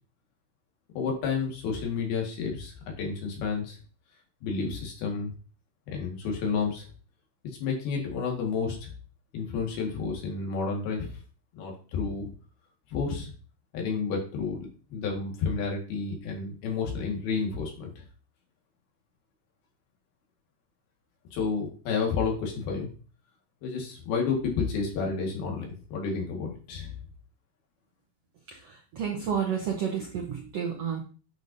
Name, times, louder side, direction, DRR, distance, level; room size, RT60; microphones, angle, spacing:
voice 1, 1.0-3.8 4.4-5.3 5.9-6.9 7.6-8.9 9.3-11.1 11.5-12.3 12.9-13.3 13.7-18.0 21.3-22.9 23.6-26.9, left 5 dB, 85° left, 0 dB, 3.7 m, -30 dB
voice 2, 28.5-31.0, right 7 dB, 75° right, 1 dB, 1.4 m, -31 dB
8.9 x 6.4 x 2.7 m, 0.38 s
omnidirectional pair, 4.3 m